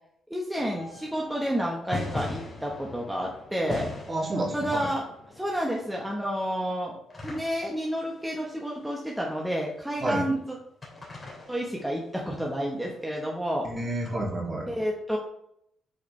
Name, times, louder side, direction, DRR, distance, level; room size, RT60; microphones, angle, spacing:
voice 1, 0.3-3.9 4.5-5.0 5.4-6.9 7.2-10.5 11.5-13.7 14.7-15.2, equal, 5° right, -2 dB, 1.1 m, -30 dB
sound 1, 0.6-9.8 10.8-12.7 14.0-14.1, left 2 dB, 25° left, 2.8 m, -41 dB
voice 2, 4.1-4.9 10.0-10.2 13.6-14.7, right 1 dB, 30° right, -2 dB, 2.3 m, -30 dB
8.1 x 4.8 x 3.2 m, 0.74 s
cardioid pair, 90°, 0 cm